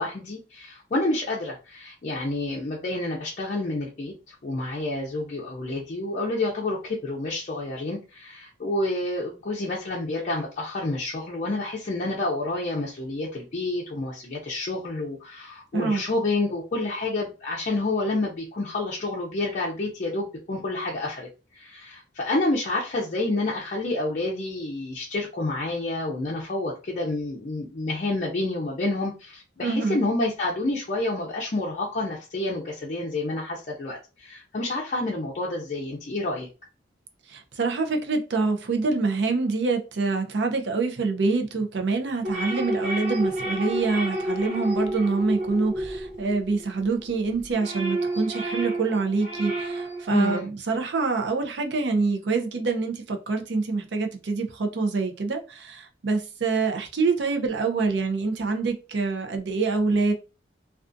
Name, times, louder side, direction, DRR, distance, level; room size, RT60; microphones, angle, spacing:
voice 1, 0.0-21.3 21.5-36.5 50.1-50.5, left 2 dB, 40° left, 0.5 m, -29 dB
voice 2, 29.6-30.0 37.3-60.1, right 4 dB, 65° right, 0.5 m, -26 dB
sound 1, 42.2-46.9 47.3-50.1, right 1 dB, 35° right, 0.9 m, -30 dB
2.4 x 2.3 x 2.5 m
head